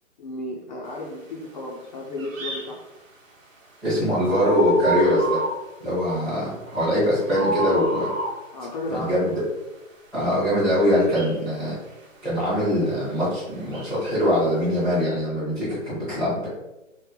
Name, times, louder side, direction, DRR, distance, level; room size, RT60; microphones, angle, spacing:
voice 1, 0.2-2.8 8.5-9.4, left 2 dB, 35° left, -3 dB, 0.5 m, -33 dB
sound 1, 2.2-2.7 4.2-5.6 6.0-6.2 6.7-8.4 10.9-11.3 13.6-14.2, right 1 dB, 85° right, 1.0 m, -29 dB
voice 2, 3.8-5.4 5.8-8.1 8.9-9.3 10.1-11.8 12.2-16.5, equal, ahead, -13 dB, 0.7 m, -22 dB
3.1 x 2.0 x 3.7 m, 0.98 s
hypercardioid pair, 135°, 39 cm